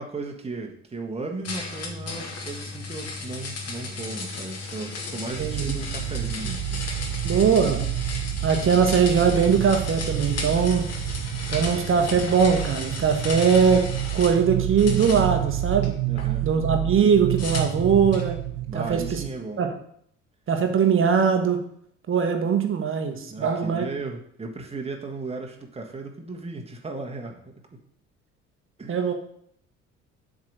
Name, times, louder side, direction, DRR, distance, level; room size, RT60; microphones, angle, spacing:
voice 1, 0.0-6.8 16.0-16.5 18.7-19.6 23.3-27.8 28.8-29.0, right 3 dB, 15° right, 1 dB, 1.5 m, -36 dB
sound 1, 1.4-14.4 14.8-16.3 17.4-18.3, left 3 dB, 40° left, 1.6 m, -35 dB
sound 2, 5.3-19.3, right 14 dB, 60° right, 0.6 m, -29 dB
voice 2, 5.4-5.8 7.2-7.9 8.4-10.9 11.5-16.0 16.4-18.4 18.7-19.2 19.6-19.7 20.5-21.7 22.1-23.9 28.9-29.1, right 6 dB, 35° right, 6 dB, 1.2 m, -21 dB
7.3 x 3.9 x 6.4 m, 0.67 s
figure-of-eight pair, 50°, 38 cm